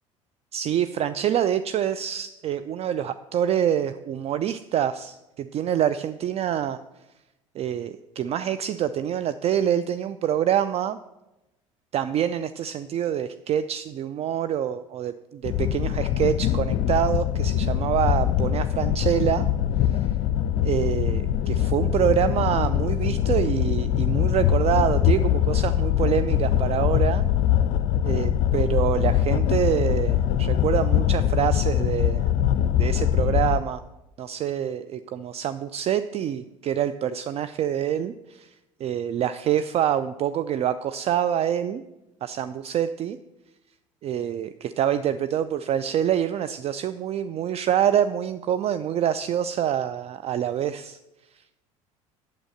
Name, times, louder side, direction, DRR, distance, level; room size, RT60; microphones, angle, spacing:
voice 1, 0.5-6.8 7.5-11.0 11.9-19.5 19.8-20.1 20.6-27.2 28.0-32.3 32.8-33.8 34.2-38.5 38.8-41.8 42.2-43.2 44.0-51.0, right 10 dB, 35° right, 12 dB, 0.4 m, -26 dB
sound 1, 15.4-33.6, left 10 dB, 50° left, 0.5 m, -23 dB
8.7 x 7.6 x 6.6 m, 0.97 s
figure-of-eight pair, 65°, 18 cm